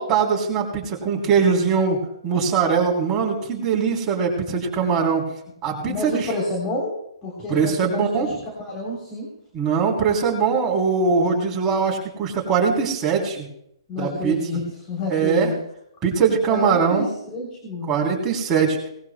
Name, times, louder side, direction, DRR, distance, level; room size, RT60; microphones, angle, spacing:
voice 1, 0.0-5.2 5.6-6.3 7.5-8.3 9.5-13.5 14.0-14.4 15.1-15.5 16.0-17.1 17.9-18.8, right 6 dB, 20° right, -2 dB, 3.2 m, -21 dB
voice 2, 5.8-6.9 7.2-9.3 13.9-15.6 16.5-18.0, left 1 dB, 25° left, -1 dB, 3.3 m, -29 dB
19.0 x 15.5 x 2.2 m, 0.74 s
hypercardioid pair, 150°, 3 cm